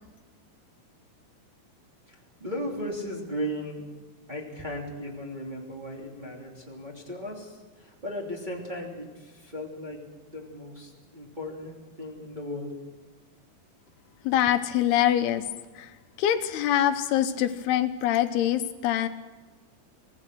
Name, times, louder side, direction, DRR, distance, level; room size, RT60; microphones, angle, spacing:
voice 1, 2.1-3.9 4.3-12.7, equal, 15° right, -2 dB, 2.7 m, -36 dB
voice 2, 14.2-15.5 15.8-19.1, left 11 dB, 80° left, 8 dB, 2.9 m, -24 dB
25.0 x 18.5 x 6.3 m, 1.3 s
omnidirectional pair, 4.6 m